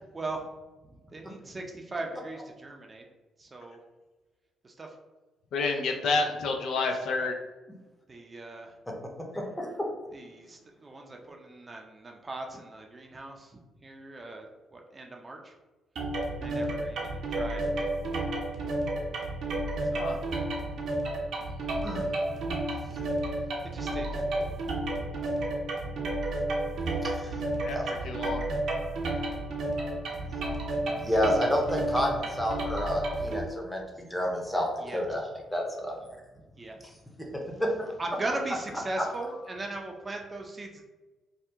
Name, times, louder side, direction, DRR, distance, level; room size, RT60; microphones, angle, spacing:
voice 1, 0.1-0.5 0.8-3.0 3.4-3.8 4.6-5.0 6.8-7.3 8.1-8.7 10.1-15.5 16.4-17.9 19.9-20.1 23.6-24.5 29.8-30.2 30.8-31.1 34.8-35.2 36.4-37.0 37.4-37.5 38.0-40.8, right 2 dB, 30° right, 2 dB, 0.5 m, -39 dB
voice 2, 5.5-7.3 20.0-20.2 27.6-27.8 28.0-28.5, left 3 dB, 75° left, 3 dB, 0.4 m, -29 dB
voice 3, 9.3-9.9 21.8-22.0 27.0-27.4 27.7-27.9 31.0-35.2 35.5-35.9 37.6-37.9, equal, 5° left, 0 dB, 0.7 m, -29 dB
sound 1, 16.0-33.4, right 1 dB, 70° right, 0.7 m, -31 dB
2.7 x 2.3 x 3.4 m, 1.2 s
cardioid pair, 90°, 0 cm